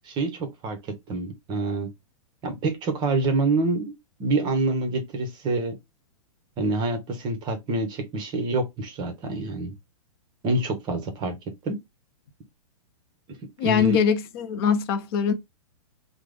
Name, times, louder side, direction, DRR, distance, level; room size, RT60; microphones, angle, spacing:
voice 1, 0.0-0.8 1.1-1.9 2.4-3.9 4.2-5.7 6.6-9.7 10.4-11.4 11.6-11.8 13.6-14.0, right 2 dB, 25° right, 0.8 m, -26 dB
voice 2, 13.6-15.3, left 7 dB, 40° left, 0.6 m, -22 dB
3.4 x 2.0 x 3.3 m
hypercardioid pair, 135°, 18 cm